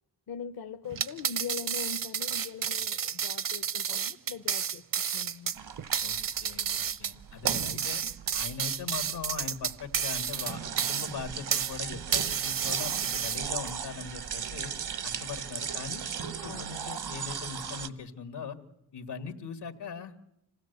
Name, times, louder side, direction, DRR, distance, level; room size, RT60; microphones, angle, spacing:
voice 1, 0.3-4.8 5.1-5.5 16.4-16.7, left 6 dB, 65° left, 9 dB, 0.8 m, -41 dB
sound 1, 0.9-11.8 12.1-13.7, right 8 dB, 55° right, 0.7 m, -31 dB
sound 2, 5.5-17.9, right 7 dB, 75° right, 1.2 m, -37 dB
voice 2, 6.0-8.0 8.3-14.7 15.0-18.6 18.9-20.1, left 6 dB, 90° left, 9 dB, 2.0 m, -40 dB
26.5 x 16.5 x 8.0 m, 0.86 s
wide cardioid pair, 110°, 40 cm